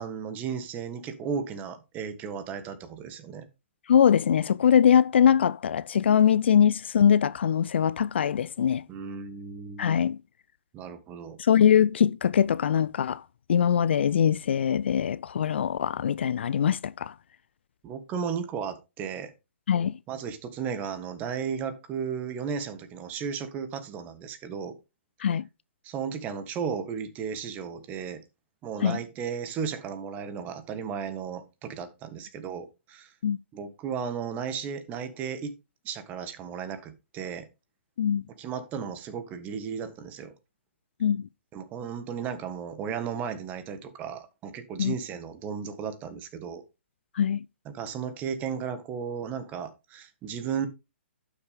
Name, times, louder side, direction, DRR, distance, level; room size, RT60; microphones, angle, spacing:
voice 1, 0.0-3.5 8.9-9.9 10.7-11.4 17.8-19.3 20.1-24.7 25.8-28.2 28.6-33.1 33.5-35.5 35.8-37.5 38.4-40.3 41.5-46.6 47.6-50.7, right 7 dB, 25° right, 1.5 m, -34 dB
voice 2, 3.9-8.8 9.8-10.2 11.4-13.2 13.5-17.1 19.7-20.0 25.2-25.5 28.8-29.0 33.2-33.4 38.0-38.3 41.0-41.3 44.8-44.9 47.2-47.4, left 8 dB, 60° left, 0.4 m, -22 dB
11.5 x 6.3 x 3.5 m
figure-of-eight pair, 125°, 7 cm